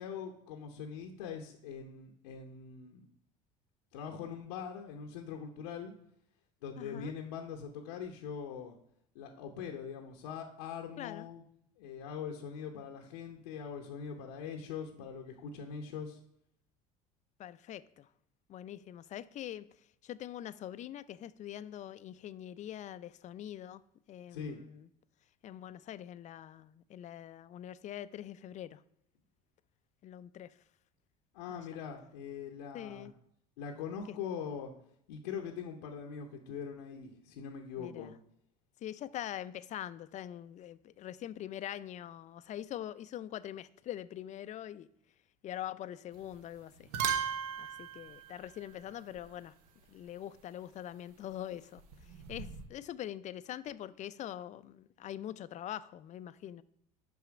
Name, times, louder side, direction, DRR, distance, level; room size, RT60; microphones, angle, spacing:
voice 1, 0.0-3.1 3.9-5.9 6.6-8.7 9.1-11.4 11.8-16.2 24.3-24.6 31.3-33.1 33.6-34.7 35.1-38.1, left 7 dB, 85° left, 0.8 m, -42 dB
voice 2, 6.8-7.1 11.0-11.3 17.4-18.1 18.5-19.7 20.0-23.8 24.1-24.9 25.4-28.8 30.0-30.5 31.5-31.6 32.7-33.1 34.1-34.2 37.8-38.2 38.8-44.9 45.4-46.9 47.6-49.5 49.9-51.8 52.3-56.6, left 11 dB, 40° left, 0.4 m, -43 dB
sound 1, 46.2-46.5 46.8-49.3 51.8-52.7, right 7 dB, 85° right, 0.9 m, -38 dB
5.9 x 5.6 x 5.0 m
hypercardioid pair, 80°, 19 cm